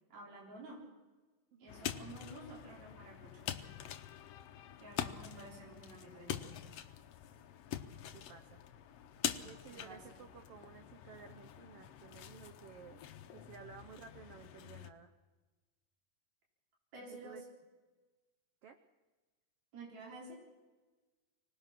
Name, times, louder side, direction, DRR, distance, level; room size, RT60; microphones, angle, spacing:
voice 1, 0.1-0.9 1.6-3.5 4.8-6.5 9.7-10.2 16.9-17.5 19.7-20.4, right 2 dB, 55° right, -3 dB, 5.1 m, -51 dB
voice 2, 1.5-2.2 8.1-8.6 9.4-13.0 13.3-15.1 17.0-17.4 18.6-18.8, right 7 dB, 75° right, 7 dB, 1.4 m, -55 dB
sound 1, 1.7-14.9, left 10 dB, 75° left, 1.4 m, -45 dB
25.0 x 19.0 x 5.8 m, 1.3 s
omnidirectional pair, 3.9 m